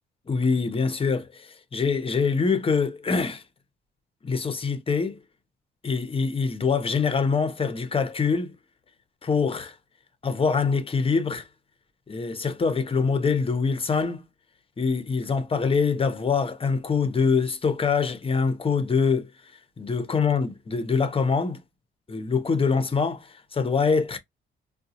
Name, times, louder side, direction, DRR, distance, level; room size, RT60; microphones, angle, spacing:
voice 1, 0.3-3.4 4.2-5.2 5.8-8.5 9.2-9.7 10.2-11.5 12.1-14.3 14.8-19.3 19.8-21.6 22.1-24.2, left 5 dB, 30° left, 0.8 m, -24 dB
3.7 x 2.3 x 2.8 m
cardioid pair, 90°, 20 cm